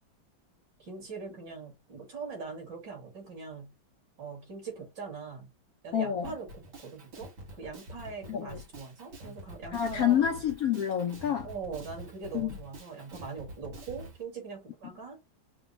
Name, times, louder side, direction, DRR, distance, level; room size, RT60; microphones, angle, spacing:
voice 1, 0.8-3.7 4.2-5.5 5.8-10.2 11.4-15.2, right 5 dB, 65° right, 2.8 m, -42 dB
voice 2, 5.9-6.3 8.3-8.6 9.7-11.5 12.3-12.5, left 9 dB, 85° left, 0.8 m, -28 dB
Drum kit, 6.2-14.2, equal, 90° right, 3.0 m, -46 dB
5.1 x 2.2 x 3.9 m
omnidirectional pair, 2.1 m